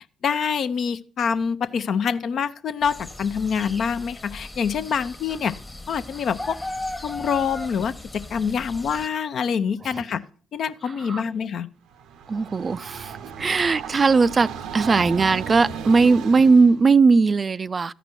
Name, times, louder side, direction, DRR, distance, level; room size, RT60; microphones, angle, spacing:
voice 1, 0.2-5.6 5.9-6.6 7.0-10.2 10.5-11.7, left 6 dB, 60° left, 0.7 m, -26 dB
sound 1, 2.8-9.1, left 2 dB, 15° left, 1.1 m, -37 dB
Train, 11.9-16.8, right 7 dB, 70° right, 0.7 m, -35 dB
voice 2, 12.3-17.9, right 4 dB, 40° right, 0.4 m, -19 dB
13.0 x 5.1 x 6.0 m
hypercardioid pair, 50°, 0 cm